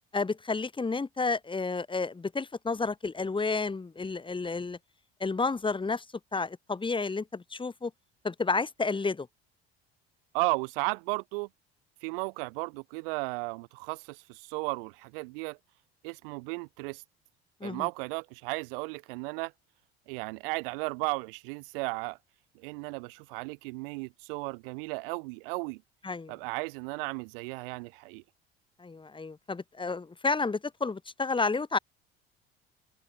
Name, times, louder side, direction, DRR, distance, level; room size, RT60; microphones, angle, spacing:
voice 1, 0.1-4.8 5.2-6.0 6.3-7.9 8.2-9.3 17.6-17.9 26.0-26.3 28.8-31.8, left 4 dB, 15° left, 2.0 m, -31 dB
voice 2, 10.3-11.5 12.0-15.6 16.0-17.0 17.6-19.5 20.1-22.2 22.5-25.8 26.3-28.2, right 29 dB, 60° right, 1.4 m, -35 dB
figure-of-eight pair, 60°, 30 cm